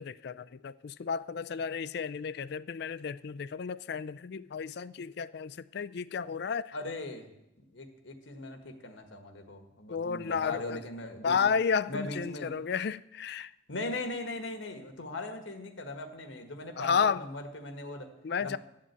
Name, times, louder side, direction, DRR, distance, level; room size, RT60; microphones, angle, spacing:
voice 1, 0.0-6.7 9.9-10.8 11.2-13.5 16.8-17.2 18.2-18.6, left 6 dB, 55° left, 0.4 m, -32 dB
voice 2, 6.7-7.3 7.7-11.4 11.9-12.5 13.7-18.1 18.4-18.6, left 2 dB, 75° left, 1.6 m, -39 dB
12.5 x 7.6 x 8.2 m
head